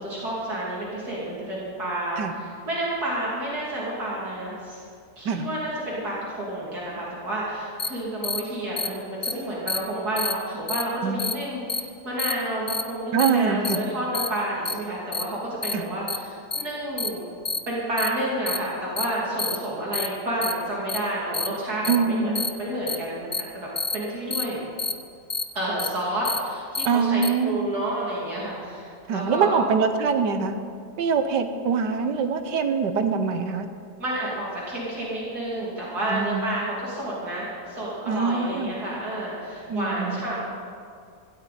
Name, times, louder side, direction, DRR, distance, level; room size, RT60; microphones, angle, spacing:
voice 1, 0.0-4.8 5.2-17.2 17.7-22.3 22.6-23.7 23.9-24.6 25.5-29.6 34.0-40.4, right 1 dB, 55° right, -7 dB, 3.4 m, -30 dB
sound 1, 7.8-7.9 8.2-8.4 8.8-8.9 9.2-9.3 9.7-9.8 10.2-10.3 10.7-10.8 11.2-11.3 11.7-11.8 12.2-12.3 12.7-12.8 13.2-13.3 13.6-13.8 14.1-14.3 14.6-14.7 15.1-15.2 15.6-15.7 16.1-16.2 16.5-16.6 17.0-17.1 17.4-17.6 18.0-18.1 18.5-18.6 19.0-19.1 19.4-19.6 19.9-20.1 20.4-20.5 20.9-21.0 21.3-21.5 21.8-22.0 22.3-22.5 22.9-23.0 23.3-23.4 23.8-23.9 24.3-24.4 24.8-24.9 25.3-25.4 25.8-25.9 26.2-26.4 26.7-26.9 27.2-27.3, left 4 dB, 50° left, 0.3 m, -27 dB
voice 2, 13.1-13.8 15.7-15.9 21.9-22.5 26.8-27.6 29.1-30.6 31.0-33.7 36.1-36.5 38.1-38.7 39.7-40.2, right 5 dB, 75° right, 8 dB, 1.5 m, -24 dB
17.0 x 15.0 x 4.3 m, 2.3 s
omnidirectional pair, 1.9 m